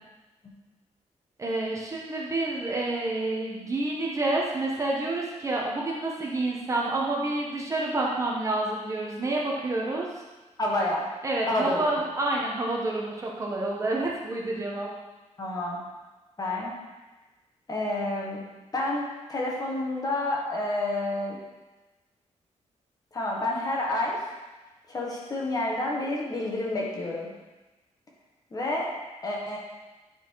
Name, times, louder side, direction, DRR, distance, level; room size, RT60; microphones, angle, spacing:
voice 1, 1.4-10.1 11.2-14.9, right 2 dB, 25° right, -3 dB, 1.1 m, -28 dB
voice 2, 10.6-11.1 11.4-11.8 15.4-15.8 16.4-16.7 17.7-18.4 18.7-19.0 19.3-21.4 23.1-24.2 24.9-27.3 28.5-28.9 29.2-29.6, left 1 dB, 30° left, -3 dB, 1.4 m, -29 dB
10.0 x 4.3 x 4.7 m, 1.2 s
wide cardioid pair, 180°, 12 cm